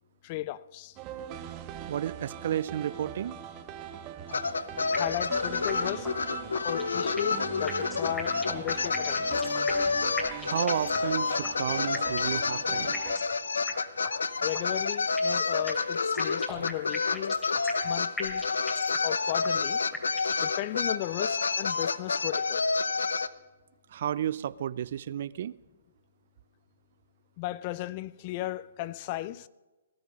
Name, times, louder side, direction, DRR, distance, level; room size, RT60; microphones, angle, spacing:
voice 1, 0.2-1.0 4.9-6.1 6.6-9.3 14.4-17.4 17.8-18.4 19.0-19.9 20.4-22.7 27.4-29.5, left 16 dB, 40° left, 0.5 m, -35 dB
sound 1, 1.0-13.2, right 9 dB, 30° right, 1.3 m, -41 dB
voice 2, 1.9-3.4 10.4-12.9 23.9-25.5, right 10 dB, 55° right, 0.5 m, -32 dB
sound 2, 4.3-23.3, left 4 dB, 80° left, 0.7 m, -29 dB
sound 3, 4.9-5.3 5.7-5.8 6.0-6.1 6.5-7.4 7.7-9.9 10.2-11.1 11.4-11.5 11.9-12.4 12.9-13.3 13.7-13.8 14.0-14.1 14.5-15.4 15.7-17.9 18.2-19.1 19.4-19.5 19.9-20.4, left 2 dB, 15° left, 3.1 m, -39 dB
19.5 x 12.0 x 5.3 m
hypercardioid pair, 130°, 0 cm